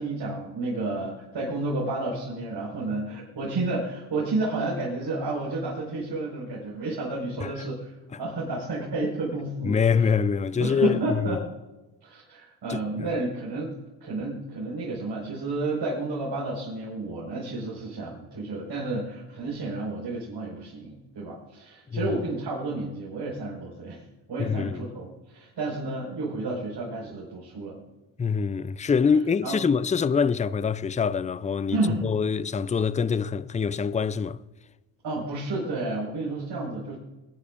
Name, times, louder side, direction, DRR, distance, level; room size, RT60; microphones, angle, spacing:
voice 1, 0.0-10.2 10.6-11.4 12.0-13.7 14.0-24.0 24.3-27.8 29.4-29.6 31.7-32.0 35.0-36.9, right 2 dB, 60° right, 5.2 m, -31 dB
voice 2, 9.6-11.4 12.7-13.1 21.9-22.1 24.4-24.8 28.2-34.4, left 6 dB, 15° left, 0.4 m, -25 dB
21.5 x 12.0 x 2.6 m
supercardioid pair, 65°, 47 cm